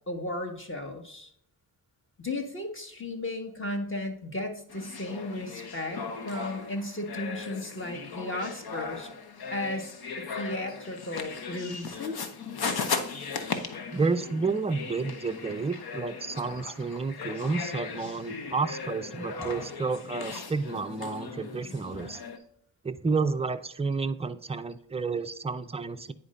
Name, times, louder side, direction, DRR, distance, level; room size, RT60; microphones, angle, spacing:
voice 1, 0.1-1.3 2.2-9.2 9.5-9.9 10.2-12.2, left 1 dB, 25° left, 3 dB, 1.6 m, -35 dB
sound 1, 4.7-22.4, left 5 dB, 55° left, 1.0 m, -37 dB
voice 2, 13.9-22.2 22.8-26.1, right 4 dB, 15° right, 9 dB, 0.5 m, -30 dB
9.7 x 4.4 x 2.5 m, 0.68 s
cardioid pair, 60°, 45 cm